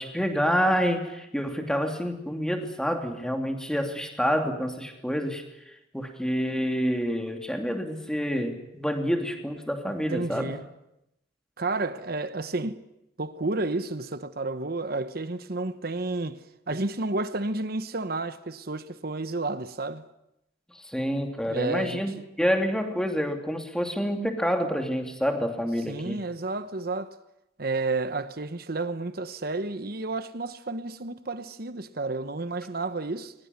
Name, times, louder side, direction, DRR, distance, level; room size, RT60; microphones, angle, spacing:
voice 1, 0.0-5.4 5.9-10.5 20.9-22.1 22.4-26.2, equal, 5° left, 2.9 m, -28 dB
voice 2, 10.1-10.7 11.6-12.8 13.2-20.1 21.5-22.2 25.9-27.2 27.6-33.3, right 3 dB, 55° right, 1.1 m, -31 dB
22.5 x 20.0 x 9.7 m
head